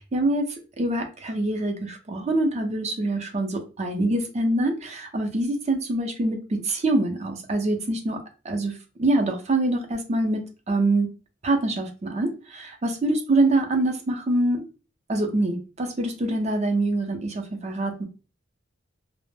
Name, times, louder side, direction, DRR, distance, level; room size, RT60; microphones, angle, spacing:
voice 1, 0.1-0.5 0.8-8.7 9.0-11.1 11.4-14.6 15.1-18.0, right 2 dB, 35° right, 4 dB, 0.5 m, -25 dB
2.1 x 2.0 x 3.1 m, 0.33 s
head